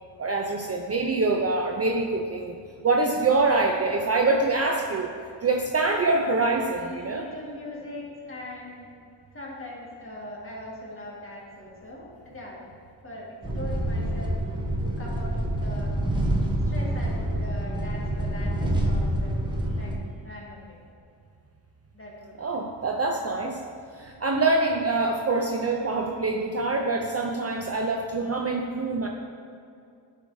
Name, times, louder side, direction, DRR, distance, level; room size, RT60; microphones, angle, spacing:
voice 1, 0.2-2.6 2.8-5.1 5.4-7.2 22.4-23.6 23.9-29.1, right 3 dB, 35° right, 1 dB, 0.4 m, -25 dB
voice 2, 6.8-8.9 9.3-12.6 13.0-14.3 14.8-15.9 16.6-19.5 19.8-20.0 20.2-20.8 21.9-22.4, left 1 dB, 30° left, -4 dB, 1.6 m, -40 dB
sound 1, 13.4-20.0, right 1 dB, 10° right, 0.8 m, -27 dB
10.0 x 4.9 x 2.6 m, 2.4 s
cardioid pair, 100°, 46 cm